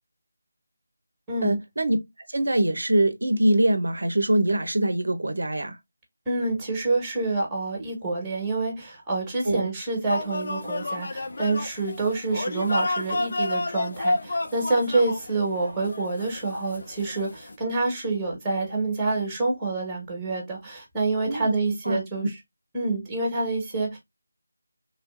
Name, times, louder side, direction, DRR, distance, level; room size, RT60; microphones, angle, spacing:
voice 1, 1.4-2.0 2.3-5.8 9.4-9.7 21.3-21.5 21.8-22.0, right 1 dB, 70° right, 0.5 m, -23 dB
voice 2, 6.3-22.3 22.7-24.0, right 3 dB, 10° right, 1.3 m, -27 dB
sound 1, 10.1-17.6, left 2 dB, 55° left, 0.6 m, -30 dB
3.2 x 2.4 x 2.4 m
figure-of-eight pair, 165°, 0 cm